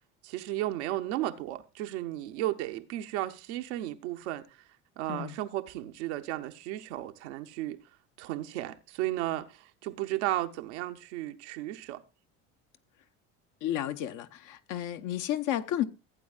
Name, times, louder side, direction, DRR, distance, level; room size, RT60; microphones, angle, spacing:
voice 1, 0.2-4.4 5.0-7.8 8.2-9.5 9.8-12.0, right 15 dB, 85° right, 0.8 m, -34 dB
voice 2, 13.6-15.8, left 12 dB, 65° left, 0.9 m, -32 dB
15.5 x 8.6 x 2.4 m
supercardioid pair, 80°, 33 cm